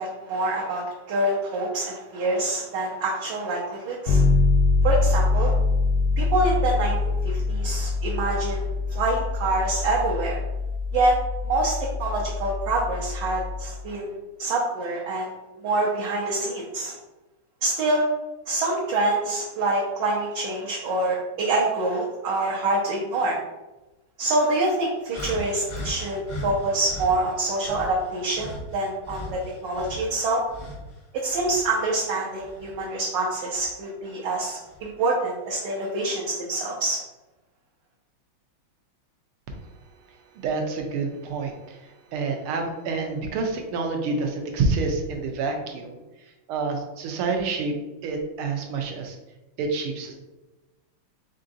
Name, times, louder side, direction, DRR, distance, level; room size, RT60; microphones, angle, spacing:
voice 1, 0.0-4.2 4.8-5.5 6.2-10.4 10.9-11.2 11.4-15.3 15.6-16.9 17.6-18.1 18.5-23.4 24.2-30.4 31.1-37.0, right 2 dB, 70° right, -3 dB, 1.3 m, -26 dB
Bass guitar, 4.1-13.8, left 3 dB, 85° left, 1.5 m, -24 dB
sound 1, 25.1-27.1 27.6-30.9 31.3-32.8 33.5-33.7 34.6-34.8, left 1 dB, 45° left, 0.5 m, -37 dB
voice 2, 40.1-46.0 46.2-47.8 48.0-49.2 49.6-50.1, right 4 dB, 90° right, 3 dB, 1.6 m, -28 dB
4.6 x 3.8 x 2.6 m, 1.1 s
omnidirectional pair, 2.3 m